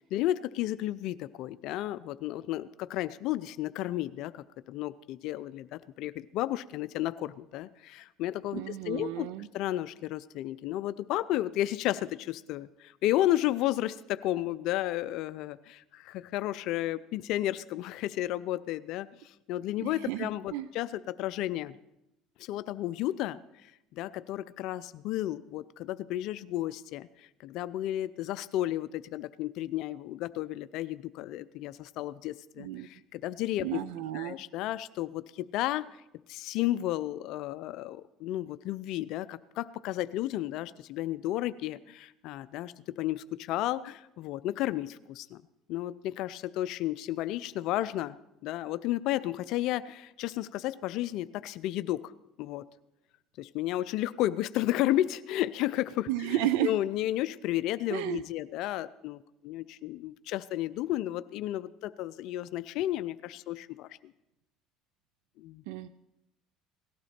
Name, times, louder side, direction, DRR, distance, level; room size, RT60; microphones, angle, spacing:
voice 1, 0.1-19.1 19.5-21.7 22.4-27.1 27.4-33.8 34.1-35.9 36.3-45.4 45.7-52.1 52.4-52.6 53.4-64.1 65.4-65.6, left 14 dB, 65° left, 15 dB, 0.5 m, -33 dB
voice 2, 8.5-9.5 19.8-20.7 32.6-32.9 33.6-34.4 56.1-56.7 57.9-58.2 65.7-65.9, right 14 dB, 80° right, 15 dB, 0.4 m, -32 dB
18.0 x 12.0 x 4.4 m, 0.89 s
supercardioid pair, 90°, 0 cm